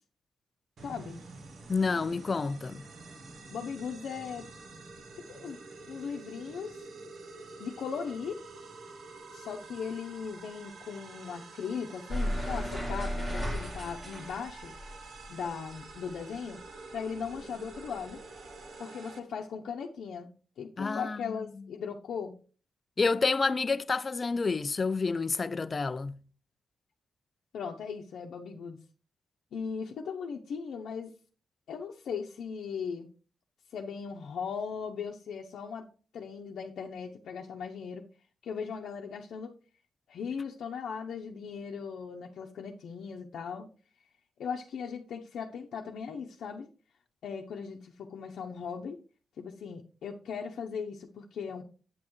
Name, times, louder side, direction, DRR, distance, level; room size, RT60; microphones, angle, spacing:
voice 1, 0.8-1.2 3.5-4.4 5.3-5.6 5.9-6.9 7.6-8.4 9.3-14.7 15.3-16.6 16.9-18.2 18.8-20.3 20.6-22.3 27.5-28.8 29.5-31.1 31.7-33.1 33.7-35.9 36.1-38.0 38.4-39.5 40.1-43.7 44.4-46.7 47.2-49.0 49.4-51.6, left 6 dB, 75° left, 0.8 m, -38 dB
sound 1, 0.8-19.2, right 3 dB, 60° right, 1.4 m, -48 dB
voice 2, 1.7-2.9 20.8-21.5 23.0-26.2, left 4 dB, 30° left, 0.4 m, -29 dB
sound 2, 12.1-16.8 17.1-18.7, equal, 20° right, 1.7 m, -35 dB
8.6 x 8.4 x 3.1 m
wide cardioid pair, 145°, 0 cm